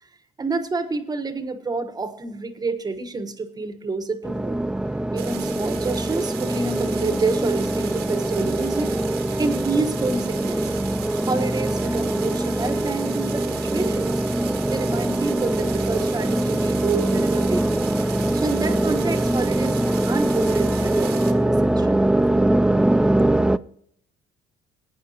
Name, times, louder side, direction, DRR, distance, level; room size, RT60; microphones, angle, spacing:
voice 1, 0.4-4.6 5.1-9.0 9.4-10.6 11.3-17.9 18.3-19.8 20.1-22.0, right 3 dB, 25° right, 10 dB, 1.2 m, -28 dB
sound 1, 4.2-23.6, right 1 dB, 5° right, 0.3 m, -23 dB
sound 2, 5.2-21.3, right 10 dB, 80° right, 1.5 m, -38 dB
19.0 x 9.2 x 2.8 m, 0.70 s
cardioid pair, 110°, 17 cm